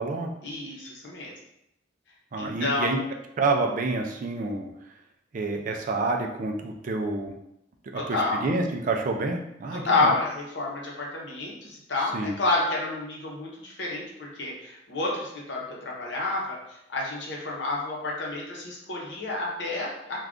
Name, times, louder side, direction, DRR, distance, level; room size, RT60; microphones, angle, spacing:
voice 1, 0.4-1.3 2.4-3.1 7.9-8.5 9.7-16.6 16.9-20.2, left 3 dB, 60° left, -3 dB, 0.8 m, -29 dB
voice 2, 2.3-3.0 3.4-4.7 5.3-7.3 7.9-10.1 12.1-12.4, right 3 dB, 40° right, 3 dB, 0.3 m, -28 dB
2.4 x 2.2 x 3.5 m, 0.81 s
head